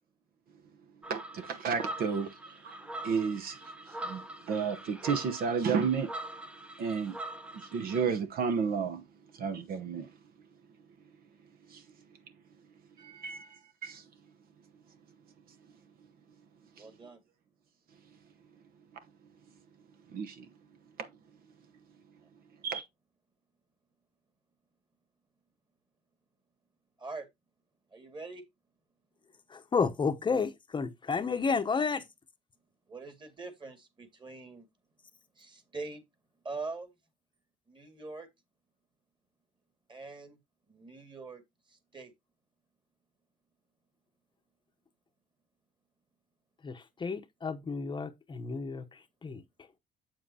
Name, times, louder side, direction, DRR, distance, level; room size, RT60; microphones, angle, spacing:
sound 1, 1.0-8.1, right 1 dB, 5° right, 0.7 m, -43 dB
voice 1, 1.1-2.8 3.0-6.1 6.8-7.2 7.5-9.1 9.3-10.1 11.7-11.8 13.2-13.5 13.8-14.0 16.8-16.9 18.9-19.0 20.1-20.5 21.0-21.1 22.6-22.8, right 6 dB, 60° right, 0.9 m, -32 dB
voice 2, 13.0-13.7 16.8-17.2 27.0-27.3 27.9-28.4 32.9-34.7 35.4-36.0 36.4-36.9 37.7-38.3 39.9-40.4 40.7-41.4 41.7-42.1, right 3 dB, 25° right, 2.1 m, -43 dB
voice 3, 29.5-32.0 46.6-48.8 49.2-49.4, left 5 dB, 30° left, 0.8 m, -31 dB
7.7 x 7.3 x 2.8 m
cardioid pair, 110°, 17 cm